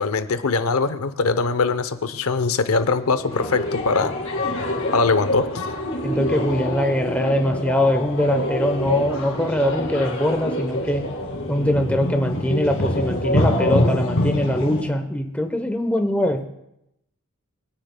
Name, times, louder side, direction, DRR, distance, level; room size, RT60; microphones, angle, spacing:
voice 1, 0.0-4.1 4.9-5.5, left 4 dB, 85° left, 11 dB, 0.7 m, -21 dB
sound 1, 2.8-14.8, left 1 dB, 65° left, 2.1 m, -25 dB
voice 2, 6.0-11.1 11.5-16.5, left 1 dB, 5° left, 5 dB, 0.8 m, -22 dB
23.0 x 9.9 x 2.2 m, 0.82 s
head